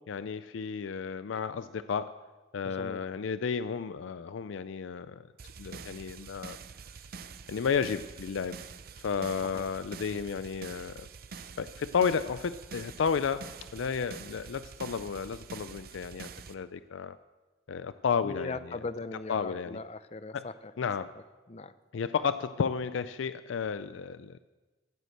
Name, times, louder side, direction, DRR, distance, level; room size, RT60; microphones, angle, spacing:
voice 1, 0.0-2.1 2.5-5.3 5.6-6.6 7.5-8.6 9.0-17.2 17.7-18.8 19.3-19.8 20.3-20.5 20.8-21.1 21.9-24.4, left 6 dB, 85° left, 13 dB, 0.4 m, -32 dB
voice 2, 2.6-3.0 9.5-9.7 18.2-20.7 21.5-21.7, left 3 dB, 35° left, 13 dB, 0.5 m, -39 dB
sound 1, 5.4-16.5, right 5 dB, 50° right, 0.6 m, -46 dB
14.0 x 8.1 x 7.7 m, 1.2 s
head